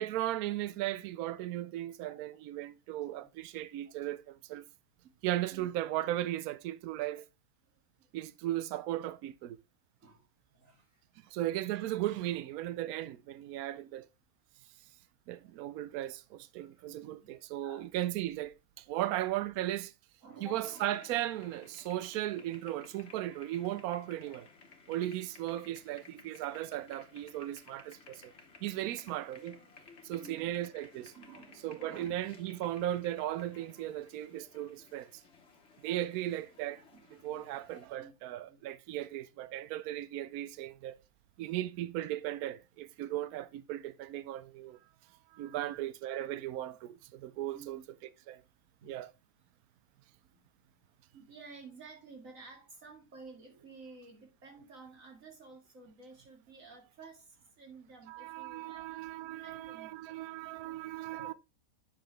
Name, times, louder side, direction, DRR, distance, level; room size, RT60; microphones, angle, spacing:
voice 1, 0.0-4.6 5.2-7.3 8.1-9.6 11.3-14.1 15.3-19.9 20.4-24.5 24.9-28.3 28.6-29.6 30.0-31.1 31.6-35.2 35.8-36.8 37.2-41.0 41.4-44.8 45.3-47.8 48.3-48.4 48.9-49.1 58.1-61.3, right 14 dB, 80° right, 1.0 m, -36 dB
voice 2, 7.6-8.2 10.0-11.3 15.3-15.6 16.6-17.9 18.9-19.2 20.2-20.8 28.9-29.0 30.1-30.5 31.1-32.1 36.9-37.5 38.0-38.1 38.4-38.6 38.8-39.0 41.4-41.6 45.4-45.8 47.5-47.8 48.8-48.9 50.3-50.8 51.1-58.8 59.2-59.9 60.6-60.8 61.1-61.3, right 3 dB, 60° right, 2.6 m, -53 dB
sound 1, 20.6-37.9, left 4 dB, 50° left, 1.5 m, -57 dB
8.5 x 6.1 x 3.2 m
omnidirectional pair, 1.5 m